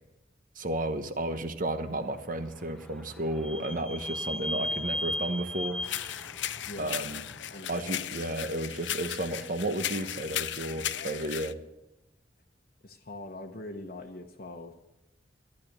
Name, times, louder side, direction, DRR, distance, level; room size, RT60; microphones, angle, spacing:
voice 1, 0.5-5.8 6.8-7.2 7.7-11.6, right 1 dB, 50° right, 9 dB, 1.2 m, -33 dB
Vehicle / Squeak, 2.0-7.6, left 1 dB, 5° left, 0.7 m, -37 dB
sound 1, 5.8-11.5, left 11 dB, 85° left, 0.6 m, -36 dB
voice 2, 6.6-7.0 7.5-8.1 12.8-14.7, left 2 dB, 55° left, 0 dB, 1.0 m, -43 dB
13.5 x 11.0 x 6.7 m, 0.98 s
head